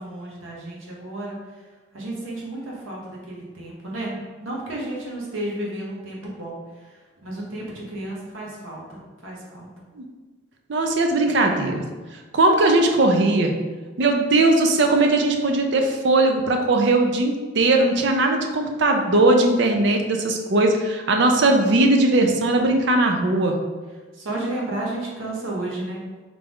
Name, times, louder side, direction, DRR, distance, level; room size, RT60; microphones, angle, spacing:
voice 1, 0.0-1.6 1.9-9.7 24.1-26.0, right 1 dB, 75° right, -3 dB, 1.1 m, -32 dB
voice 2, 10.7-11.8 12.3-13.5 14.0-23.6, right 2 dB, 60° right, 3 dB, 0.5 m, -19 dB
3.6 x 3.4 x 3.5 m, 1.3 s
head